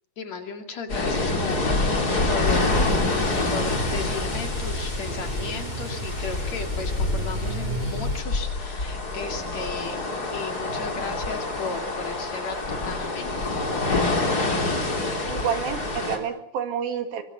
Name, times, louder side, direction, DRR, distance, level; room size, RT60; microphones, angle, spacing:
voice 1, 0.2-2.8 3.5-10.0 10.3-12.6 12.8-13.3, left 5 dB, 50° left, 6 dB, 3.5 m, -35 dB
sound 1, 0.9-16.2, left 2 dB, 25° left, 3.6 m, -27 dB
sound 2, 2.4-8.2, right 1 dB, 25° right, 1.1 m, -34 dB
voice 2, 15.3-17.2, right 8 dB, 85° right, 8 dB, 4.0 m, -29 dB
23.0 x 23.0 x 7.3 m, 0.66 s
omnidirectional pair, 4.1 m